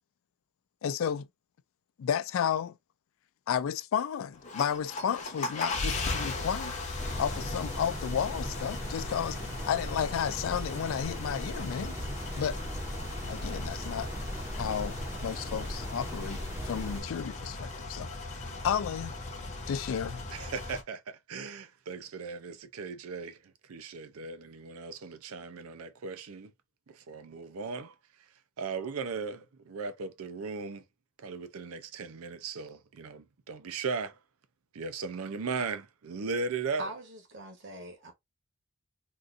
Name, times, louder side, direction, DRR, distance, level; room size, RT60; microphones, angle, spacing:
voice 1, 0.8-1.3 2.0-2.8 3.5-6.7 7.2-9.4 9.7-12.0 12.4-12.6 13.3-14.1 14.5-16.4 16.7-19.1 19.7-20.2, left 8 dB, 65° left, 0.3 m, -32 dB
sound 1, 4.3-20.8, left 2 dB, 35° left, 0.7 m, -38 dB
sound 2, 7.0-17.0, right 1 dB, 10° right, 0.6 m, -39 dB
voice 2, 20.3-23.4 23.7-26.5 26.9-27.9 28.6-30.8 31.2-34.2 34.7-36.9, right 4 dB, 75° right, 0.5 m, -37 dB
voice 3, 36.8-38.1, right 2 dB, 55° right, 1.1 m, -42 dB
3.8 x 2.5 x 2.5 m
head